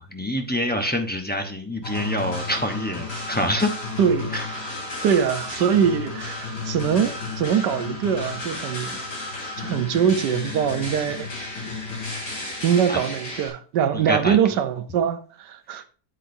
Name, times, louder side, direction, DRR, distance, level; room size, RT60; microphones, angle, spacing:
voice 1, 0.0-3.7 4.3-4.4 12.9-13.0 13.9-14.4 15.7-15.8, equal, 10° left, 0.4 m, -26 dB
sound 1, 1.8-13.5, left 3 dB, 55° left, 3.6 m, -32 dB
voice 2, 4.0-4.3 5.0-9.0 9.6-11.3 12.6-15.8, right 8 dB, 85° right, 1.4 m, -22 dB
8.5 x 8.3 x 2.7 m
omnidirectional pair, 1.8 m